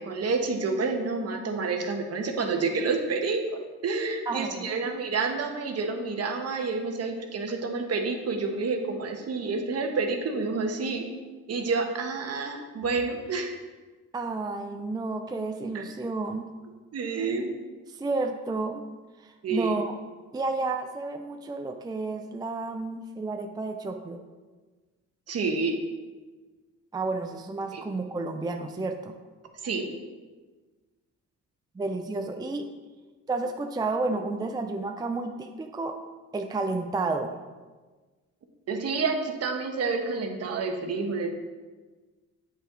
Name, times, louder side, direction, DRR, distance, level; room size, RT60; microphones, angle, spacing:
voice 1, 0.0-11.0 11.5-13.6 15.7-15.8 16.9-17.5 19.4-19.7 25.3-25.8 27.7-27.8 29.6-29.9 38.7-41.3, right 4 dB, 55° right, 4 dB, 1.1 m, -29 dB
voice 2, 4.3-4.7 14.1-16.5 17.9-18.8 19.2-20.0 20.3-24.2 26.9-29.1 31.8-32.7 33.3-36.0 36.3-37.3, right 3 dB, 15° right, 5 dB, 0.4 m, -31 dB
8.0 x 5.3 x 3.8 m, 1.3 s
cardioid pair, 90°, 30 cm